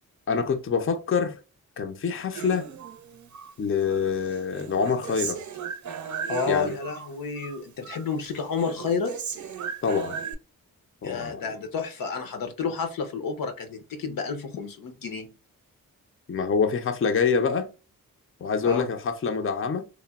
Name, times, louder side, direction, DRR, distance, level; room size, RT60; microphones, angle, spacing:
voice 1, 0.3-1.4 1.8-2.7 3.6-5.4 6.5-6.7 9.8-10.2 11.0-11.5 16.3-17.7 18.4-19.9, left 5 dB, 40° left, 0.5 m, -26 dB
Human voice, 2.3-3.5 3.9-7.1 7.4-8.1 8.3-10.3, right 7 dB, 60° right, 0.5 m, -36 dB
voice 2, 6.3-9.1 11.0-15.3 18.6-18.9, left 5 dB, 80° left, 0.7 m, -30 dB
3.0 x 2.1 x 2.3 m
cardioid pair, 60°, 34 cm